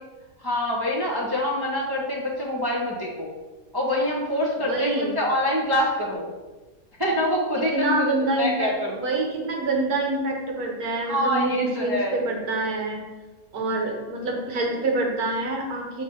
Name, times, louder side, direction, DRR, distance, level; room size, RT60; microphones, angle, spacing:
voice 1, 0.4-3.3 3.7-6.3 7.0-9.0 11.0-12.2, left 1 dB, 20° right, -4 dB, 0.6 m, -25 dB
voice 2, 4.7-5.1 7.7-8.7 9.0-13.0 13.5-16.0, right 2 dB, 70° right, 1 dB, 1.6 m, -26 dB
6.2 x 3.3 x 5.4 m, 1.2 s
omnidirectional pair, 1.7 m